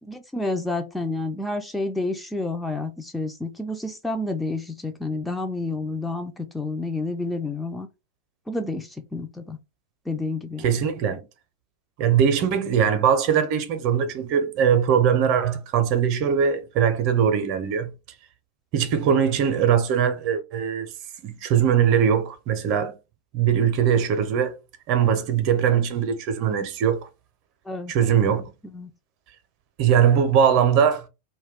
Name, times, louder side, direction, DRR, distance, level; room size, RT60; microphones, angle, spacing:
voice 1, 0.1-7.9 8.5-9.6 10.1-10.7 27.7-27.9 28.7-28.9, left 2 dB, 5° left, 0.3 m, -29 dB
voice 2, 10.6-11.2 12.0-17.9 18.7-20.9 21.2-22.9 23.3-24.6 24.9-27.1 27.9-28.5 29.8-31.1, right 8 dB, 40° right, 0.5 m, -21 dB
2.2 x 2.1 x 3.3 m
figure-of-eight pair, 90°, 0 cm